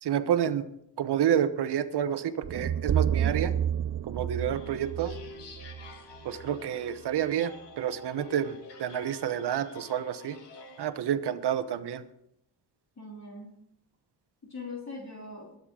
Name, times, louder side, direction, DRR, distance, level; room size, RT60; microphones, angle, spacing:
voice 1, 0.0-0.6 1.0-3.5 4.0-5.1 6.2-10.4 10.8-12.0, right 9 dB, 75° right, 11 dB, 1.1 m, -29 dB
sound 1, 2.4-6.6, right 9 dB, 40° right, 0.6 m, -30 dB
voice 2, 4.4-4.7 13.0-13.5 14.4-15.6, left 3 dB, 40° left, -3 dB, 3.3 m, -42 dB
sound 2, 4.5-10.9, left 4 dB, 80° left, 2.0 m, -48 dB
22.0 x 7.9 x 3.8 m, 0.76 s
cardioid pair, 60°, 40 cm